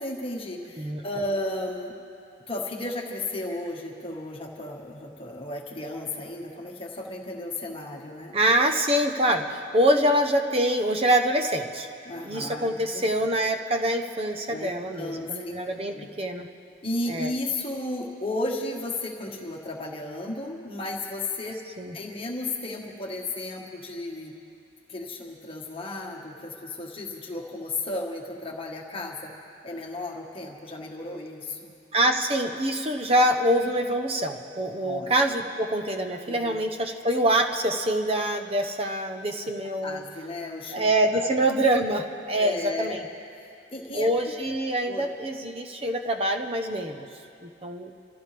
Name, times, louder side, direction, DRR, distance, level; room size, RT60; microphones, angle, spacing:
voice 1, 0.0-1.9 2.5-8.4 12.0-13.1 14.5-15.6 15.9-16.1 16.8-21.6 21.9-24.3 24.9-29.3 29.6-31.7 34.8-35.1 36.3-36.6 39.8-40.9 41.1-41.3 42.4-43.0 43.4-44.3 44.9-45.0, left 2 dB, 25° left, 0 dB, 1.6 m, -34 dB
voice 2, 8.3-11.9 12.2-16.5 17.1-17.3 21.8-21.9 31.9-40.0 40.7-43.0 43.9-47.1 47.4-47.9, right 1 dB, 30° right, 5 dB, 0.9 m, -25 dB
27.0 x 14.5 x 3.4 m, 2.5 s
head